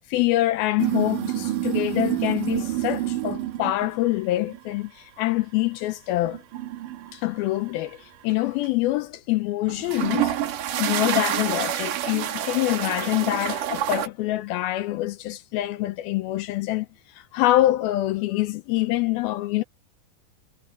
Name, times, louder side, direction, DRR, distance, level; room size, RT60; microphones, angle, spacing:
voice 1, 0.1-6.4 7.1-10.3 10.8-16.9 17.2-19.6, left 16 dB, 85° left, 2.4 m, -25 dB
sound 1, 0.8-3.9 4.4-4.7 6.2-7.9 8.3-8.7 9.7-14.1, right 12 dB, 60° right, 2.7 m, -28 dB
omnidirectional pair, 4.7 m